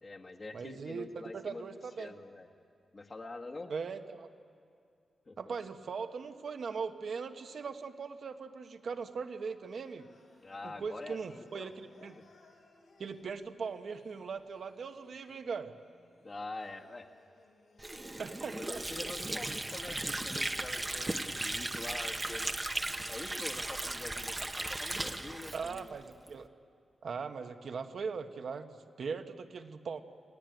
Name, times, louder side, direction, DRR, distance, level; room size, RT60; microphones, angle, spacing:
voice 1, 0.0-2.5 2.9-3.7 5.2-5.5 10.4-11.7 12.1-12.2 16.2-17.0 18.5-22.8 23.1-25.9, left 2 dB, 30° left, 3 dB, 1.7 m, -45 dB
voice 2, 0.5-1.1 1.3-2.1 3.7-4.3 5.4-10.1 10.6-12.2 13.0-15.7 18.2-19.1 25.5-26.5 27.0-30.0, right 5 dB, 60° right, 7 dB, 1.2 m, -40 dB
Singing, 9.7-19.2, left 3 dB, 85° left, 5.3 m, -64 dB
Water / Sink (filling or washing), 17.8-26.4, right 2 dB, 15° right, 0.9 m, -37 dB
29.0 x 18.0 x 9.2 m, 2.4 s
wide cardioid pair, 140°, 0 cm